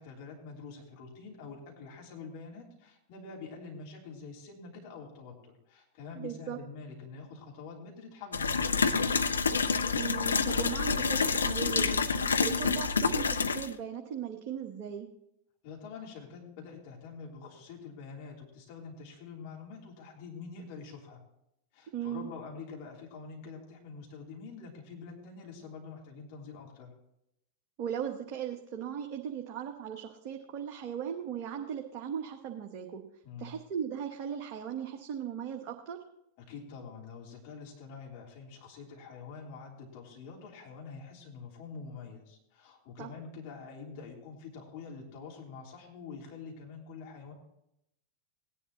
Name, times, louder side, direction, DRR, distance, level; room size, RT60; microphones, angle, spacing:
voice 1, 0.0-9.2 15.6-21.2 21.7-26.9 33.2-33.5 36.4-47.3, left 5 dB, 45° left, -1 dB, 3.2 m, -46 dB
voice 2, 6.1-6.6 9.9-15.1 21.9-22.3 27.8-33.0 33.4-36.0 43.0-43.1, right 8 dB, 40° right, 2 dB, 1.1 m, -38 dB
sound 1, 8.3-13.7, left 5 dB, 75° left, 0.6 m, -28 dB
18.0 x 10.5 x 3.0 m, 0.80 s
figure-of-eight pair, 90°, 0 cm